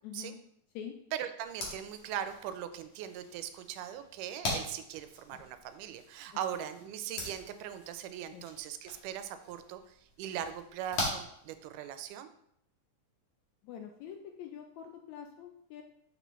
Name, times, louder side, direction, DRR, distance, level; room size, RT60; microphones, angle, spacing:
voice 1, 0.0-0.4 0.7-1.0 8.3-8.5 13.6-15.8, left 8 dB, 80° left, 4 dB, 1.6 m, -45 dB
voice 2, 1.1-12.3, right 10 dB, 85° right, 10 dB, 2.1 m, -40 dB
sound 1, 1.4-12.1, left 2 dB, 45° left, 2.0 m, -42 dB
6.8 x 5.9 x 3.0 m, 0.73 s
omnidirectional pair, 3.7 m